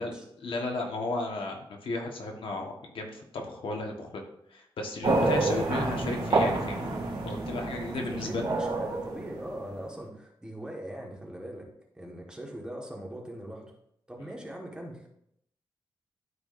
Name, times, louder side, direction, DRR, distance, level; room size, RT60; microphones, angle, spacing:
voice 1, 0.4-6.9 7.2-8.6 14.2-14.3, left 2 dB, 75° left, 2 dB, 1.4 m, -34 dB
sound 1, 5.0-9.8, right 3 dB, 70° right, 2.4 m, -29 dB
voice 2, 7.9-11.7 11.9-13.7 14.1-15.1, right 1 dB, 10° right, -1 dB, 1.5 m, -41 dB
12.5 x 4.9 x 2.6 m, 0.72 s
wide cardioid pair, 150°, 9 cm